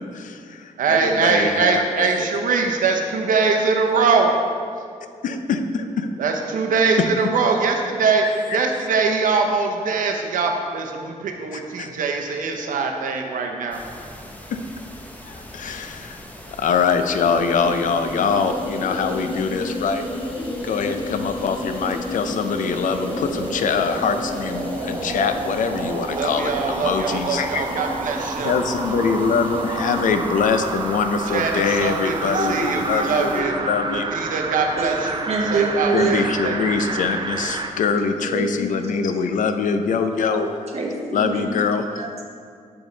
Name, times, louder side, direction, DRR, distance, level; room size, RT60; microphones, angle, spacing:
voice 1, 0.1-2.3 5.2-6.1 11.5-11.9 14.5-14.6 15.3-16.2 16.6-20.1 20.6-27.6 28.4-34.0 35.9-40.5 41.1-42.0, left 5 dB, 75° left, 8 dB, 0.5 m, -23 dB
voice 2, 0.8-4.3 6.2-8.3 8.5-13.8 26.1-28.5 31.3-33.6 33.9-36.6, right 4 dB, 90° right, 3 dB, 0.7 m, -22 dB
sound 1, 13.7-33.4, left 1 dB, 10° left, 0.7 m, -41 dB
sound 2, 17.2-30.0, left 1 dB, 40° left, 1.1 m, -32 dB
sound 3, 22.8-37.8 38.2-38.3, right 4 dB, 35° right, 0.5 m, -30 dB
voice 3, 35.3-36.2 38.2-38.5 39.1-39.2 40.0-40.4 40.7-41.4 42.0-42.2, right 4 dB, 55° right, 0 dB, 1.1 m, -25 dB
7.0 x 5.1 x 3.8 m, 2.2 s
wide cardioid pair, 120°, 13 cm